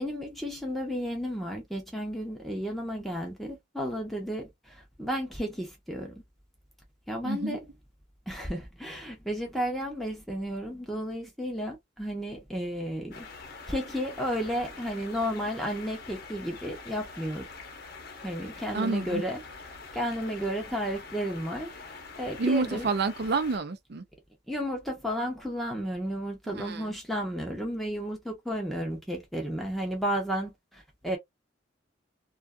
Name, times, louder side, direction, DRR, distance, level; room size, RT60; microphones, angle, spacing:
voice 1, 0.0-6.2 7.1-7.6 8.3-13.3 13.7-17.5 18.2-19.4 19.9-22.9 24.5-31.2, equal, ahead, 0.6 m, -33 dB
voice 2, 7.2-7.6 18.7-19.2 22.4-24.0 26.5-26.9, right 3 dB, 65° right, 0.5 m, -29 dB
sound 1, 13.1-23.6, left 4 dB, 55° left, 0.8 m, -45 dB
2.5 x 2.3 x 2.2 m
head